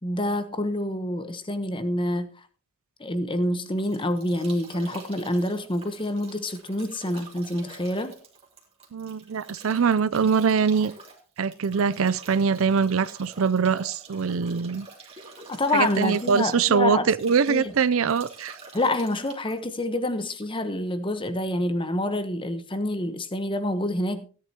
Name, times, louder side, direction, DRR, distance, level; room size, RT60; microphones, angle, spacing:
voice 1, 0.0-2.4 3.0-8.2 15.5-17.1 17.5-17.7 18.7-24.3, left 1 dB, 25° left, 1.0 m, -27 dB
Bathtub (filling or washing) / Drip / Trickle dribble, 3.4-20.6, right 3 dB, 30° right, 2.6 m, -47 dB
voice 2, 8.9-10.9 11.4-14.9 15.7-18.6, right 6 dB, 70° right, 0.5 m, -23 dB
16.5 x 10.5 x 2.9 m
head